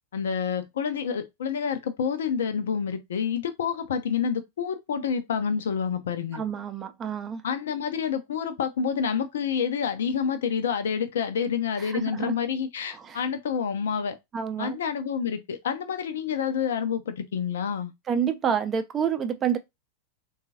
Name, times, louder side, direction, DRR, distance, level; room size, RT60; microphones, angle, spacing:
voice 1, 0.1-6.4 7.4-14.2 14.6-17.9, left 7 dB, 60° left, 0.5 m, -28 dB
voice 2, 6.3-7.4 11.9-12.3 13.0-13.2 14.3-14.8 18.1-19.6, right 8 dB, 25° right, 0.5 m, -28 dB
3.7 x 2.4 x 2.8 m
figure-of-eight pair, 90°, 0 cm